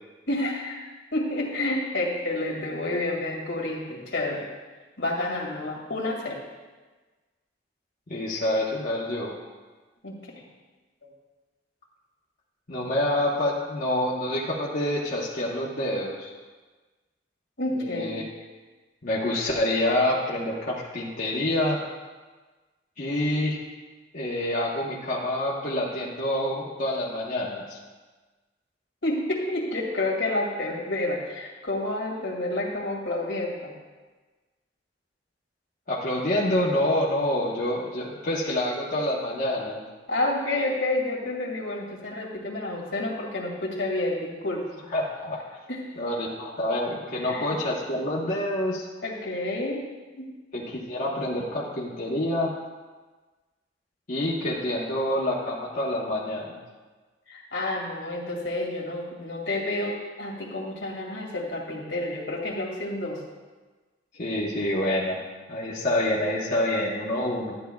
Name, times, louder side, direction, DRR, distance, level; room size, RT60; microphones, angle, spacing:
voice 1, 0.3-4.5 5.0-6.4 10.0-10.4 11.0-11.1 17.6-18.2 29.0-33.7 40.1-44.9 45.7-46.0 47.2-47.5 49.0-49.9 50.2-50.4 57.3-63.2, left 2 dB, 75° left, -2 dB, 2.3 m, -29 dB
voice 2, 8.1-9.3 12.7-16.3 17.8-18.2 19.0-21.8 23.0-23.6 24.1-27.8 35.9-39.8 44.9-45.6 46.0-48.9 50.5-52.5 54.1-56.6 64.1-65.2 65.5-67.6, left 1 dB, 50° left, -6 dB, 1.1 m, -27 dB
12.5 x 9.9 x 2.3 m, 1.3 s
head